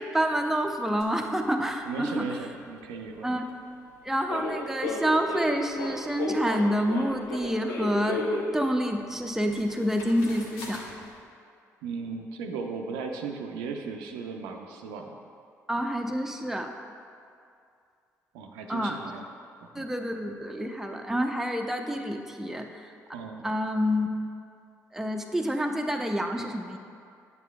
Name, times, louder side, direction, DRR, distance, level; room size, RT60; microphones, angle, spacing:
voice 1, 0.0-2.4 3.2-3.5 4.0-8.2 8.5-10.8 15.7-16.7 18.7-19.0 19.7-22.9 23.4-24.1 24.9-26.8, equal, 5° right, 3 dB, 0.6 m, -28 dB
sound 1, 1.0-1.1 4.3-8.5 9.2-9.3 9.5-11.0, left 3 dB, 75° left, 0.7 m, -33 dB
voice 2, 1.9-3.3 11.8-15.1 18.3-19.2 19.7-19.9 23.1-23.5, right 5 dB, 75° right, 3 dB, 0.4 m, -36 dB
8.2 x 6.8 x 2.3 m, 2.4 s
hypercardioid pair, 45°, 8 cm